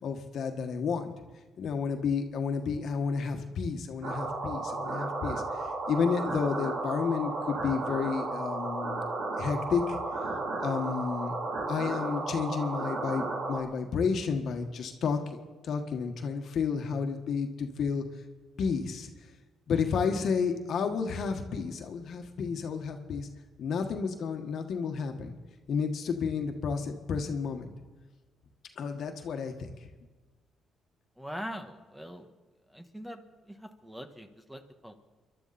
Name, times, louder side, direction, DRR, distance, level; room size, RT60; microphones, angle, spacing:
voice 1, 0.0-1.1 1.6-9.0 9.4-10.0 10.6-11.4 11.7-18.0 18.6-19.1 19.7-23.3 23.6-25.3 25.7-27.7 28.8-29.7, left 5 dB, 65° left, 5 dB, 1.6 m, -31 dB
sound 1, 4.0-13.6, right 2 dB, 75° right, 3.2 m, -34 dB
voice 2, 31.2-32.3 32.7-33.2 33.5-34.9, equal, 5° right, 6 dB, 1.4 m, -42 dB
29.0 x 11.5 x 4.2 m, 1.3 s
cardioid pair, 90°, 0 cm